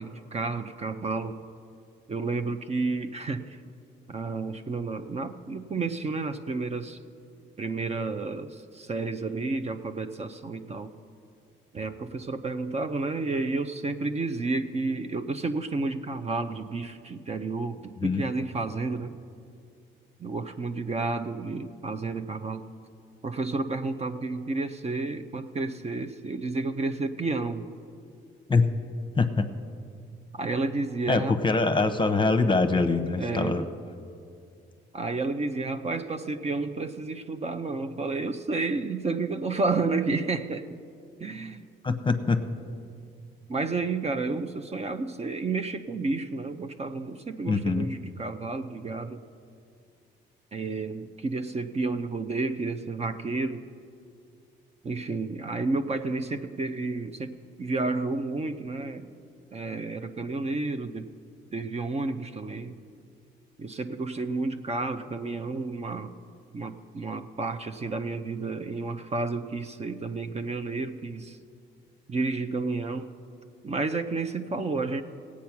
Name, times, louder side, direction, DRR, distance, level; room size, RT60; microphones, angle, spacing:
voice 1, 0.0-1.4 2.1-3.6 4.1-7.0 7.6-11.0 11.7-19.2 20.2-22.6 23.2-27.7 30.3-31.3 33.2-33.6 34.9-40.7 41.2-41.6 43.5-49.2 50.5-53.7 54.8-59.1 59.5-61.1 61.5-62.7 63.6-66.1 66.5-71.4 72.1-73.2 73.6-75.0, right 3 dB, 30° right, 8 dB, 0.6 m, -31 dB
voice 2, 29.2-29.5 31.1-33.6 41.8-42.4 47.5-47.9, left 3 dB, 25° left, 9 dB, 0.8 m, -24 dB
17.0 x 8.5 x 5.9 m, 2.4 s
cardioid pair, 90°, 20 cm